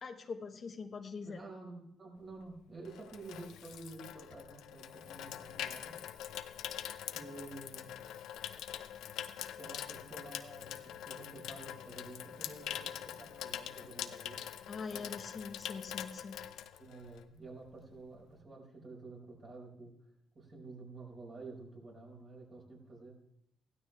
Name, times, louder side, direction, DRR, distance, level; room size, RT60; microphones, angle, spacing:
voice 1, 0.0-1.4 14.7-16.4, left 5 dB, 45° left, 7 dB, 1.0 m, -43 dB
voice 2, 1.2-5.9 7.1-8.1 9.5-10.7 11.0-14.4 14.9-15.1 16.8-19.9 20.3-23.2, right 3 dB, 45° right, -2 dB, 5.1 m, -50 dB
Water tap faucet / Sink (filling or washing), 2.3-17.4 17.7-18.0, left 10 dB, 85° left, 0.7 m, -44 dB
16.0 x 12.5 x 3.4 m, 0.74 s
cardioid pair, 85°, 0 cm